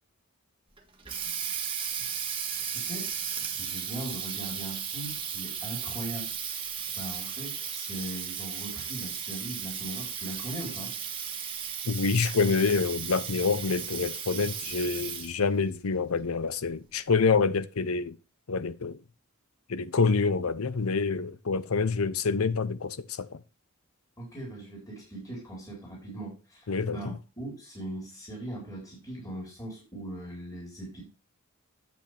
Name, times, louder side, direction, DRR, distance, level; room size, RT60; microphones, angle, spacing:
Water tap faucet, 0.8-15.5, right 8 dB, 25° right, 1.6 m, -35 dB
voice 1, 2.7-3.1 3.6-6.3 7.0-10.9 24.2-31.0, right 1 dB, 15° left, 4.1 m, -40 dB
voice 2, 11.9-18.2 18.5-19.0 19.7-23.4 26.7-27.2, left 4 dB, 85° left, 0.7 m, -27 dB
8.9 x 7.8 x 3.4 m
head